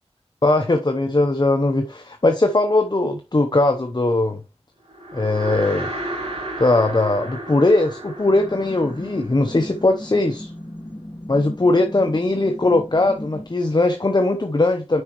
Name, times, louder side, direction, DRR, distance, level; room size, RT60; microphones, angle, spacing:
voice 1, 0.4-4.4 5.1-5.9 6.6-10.5 11.3-15.0, left 2 dB, 40° left, 0.9 m, -19 dB
sound 1, 4.9-10.3, right 1 dB, 65° right, 3.5 m, -33 dB
sound 2, 8.3-13.5, left 1 dB, 15° left, 1.4 m, -36 dB
9.4 x 5.2 x 3.1 m
wide cardioid pair, 40°, 11 cm